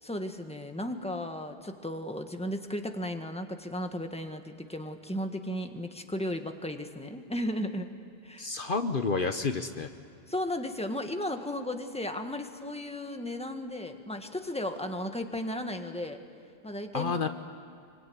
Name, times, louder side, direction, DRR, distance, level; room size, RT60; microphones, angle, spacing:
voice 1, 0.0-7.9 8.2-8.5 10.3-16.2 16.6-17.2, left 1 dB, 5° left, 5 dB, 1.6 m, -35 dB
voice 2, 8.4-9.9 16.9-17.3, left 4 dB, 55° left, 8 dB, 1.1 m, -29 dB
25.5 x 24.5 x 9.6 m, 2.4 s
omnidirectional pair, 1.0 m